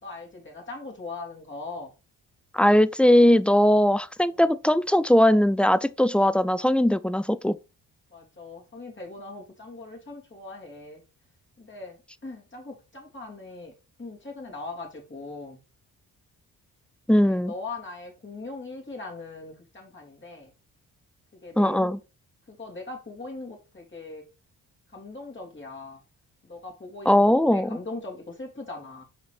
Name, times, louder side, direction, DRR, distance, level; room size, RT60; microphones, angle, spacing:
voice 1, 0.0-1.9 4.3-4.4 8.1-11.0 11.6-13.7 14.0-15.6 17.2-20.5 21.4-21.9 22.5-24.2 24.9-26.0 26.4-29.0, left 3 dB, 25° left, 3.4 m, -40 dB
voice 2, 2.5-7.6 17.1-17.5 21.6-22.0 27.1-27.8, left 1 dB, 5° left, 0.4 m, -20 dB
5.9 x 4.2 x 4.9 m
supercardioid pair, 45°, 42 cm